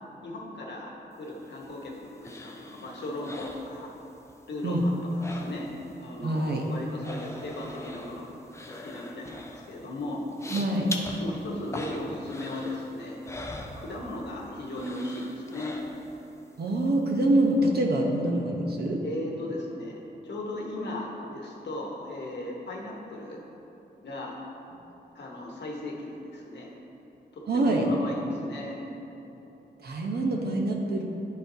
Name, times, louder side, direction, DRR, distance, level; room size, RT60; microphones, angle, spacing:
voice 1, 0.2-3.9 4.5-5.0 5.2-5.7 6.0-8.3 8.7-10.2 11.2-13.2 13.8-15.8 19.0-23.4 24.0-24.4 25.1-26.7 27.3-28.8, left 1 dB, 80° left, -1 dB, 1.0 m, -37 dB
sound 1, 1.3-4.3 4.6-6.0 6.2-14.4 14.7-16.3 16.7-16.8, left 2 dB, 15° left, 0.5 m, -42 dB
voice 2, 6.2-6.6 10.5-10.9 16.6-19.0 27.5-27.9 29.8-31.0, right 1 dB, 65° right, 0 dB, 0.8 m, -25 dB
10.0 x 4.2 x 2.7 m, 3.0 s
wide cardioid pair, 115°, 18 cm